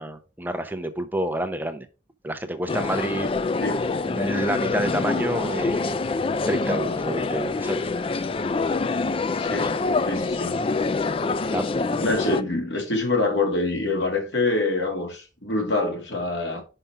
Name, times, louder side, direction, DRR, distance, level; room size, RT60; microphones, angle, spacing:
voice 1, 0.0-1.9 2.2-3.3 4.0-6.0 6.5-7.9 9.4-9.8 11.5-12.4, right 1 dB, 10° right, 0.7 m, -29 dB
sound 1, 2.7-12.4, left 3 dB, 30° left, 0.3 m, -26 dB
voice 2, 9.4-9.7 10.0-10.6 12.0-16.6, left 2 dB, 75° left, 2.2 m, -25 dB
5.6 x 5.3 x 4.6 m
head